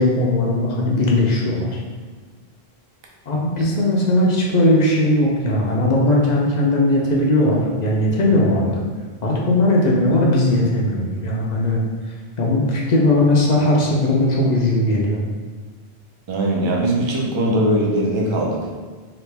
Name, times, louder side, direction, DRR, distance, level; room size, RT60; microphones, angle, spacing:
voice 1, 0.0-1.8 3.3-8.9 9.2-11.8 12.4-15.2, left 1 dB, 55° left, -2 dB, 0.5 m, -18 dB
voice 2, 16.3-18.6, right 1 dB, 40° right, -2 dB, 0.4 m, -20 dB
3.0 x 2.5 x 3.3 m, 1.5 s
omnidirectional pair, 1.1 m